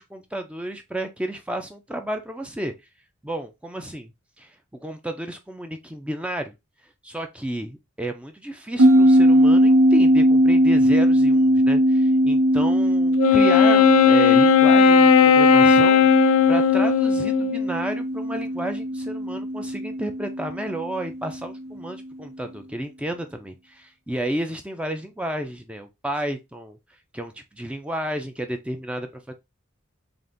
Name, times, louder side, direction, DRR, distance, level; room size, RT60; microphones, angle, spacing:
voice 1, 0.0-2.7 3.2-4.1 4.4-4.6 4.8-6.5 7.0-26.8 27.1-29.3, right 1 dB, 5° right, 0.4 m, -32 dB
sound 1, 8.8-21.6, equal, 90° right, 0.8 m, -20 dB
Wind instrument woodwind instrument, 13.2-17.7, left 6 dB, 80° left, 0.3 m, -16 dB
3.8 x 2.5 x 3.5 m
head